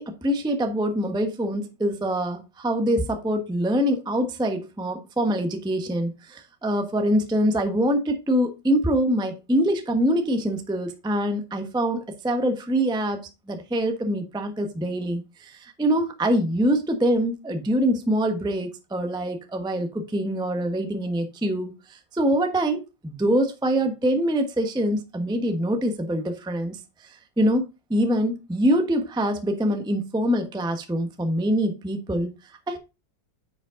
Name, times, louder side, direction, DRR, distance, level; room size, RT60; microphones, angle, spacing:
voice 1, 0.0-13.2 13.5-26.8 27.4-32.3 32.7-32.8, equal, 5° right, 0.9 m, -24 dB
9.7 x 5.1 x 3.9 m
omnidirectional pair, 2.0 m